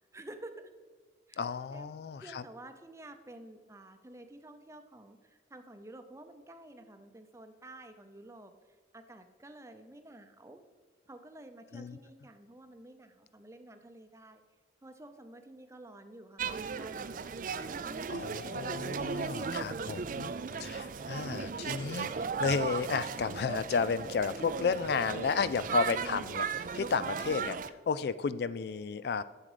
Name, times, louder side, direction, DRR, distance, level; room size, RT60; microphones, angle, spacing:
voice 1, 0.1-0.5 1.3-1.9 2.2-8.5 8.9-10.6 11.1-14.4 14.8-17.2 17.8-18.5 25.6-25.9, right 1 dB, 15° right, 7 dB, 0.7 m, -51 dB
voice 2, 1.4-2.4 11.7-12.0 18.1-20.3 20.6-27.6 27.9-29.2, left 5 dB, 60° left, 16 dB, 0.3 m, -32 dB
sound 1, 16.4-27.7, right 5 dB, 45° right, 0.4 m, -36 dB
11.0 x 7.4 x 5.0 m, 1.5 s
head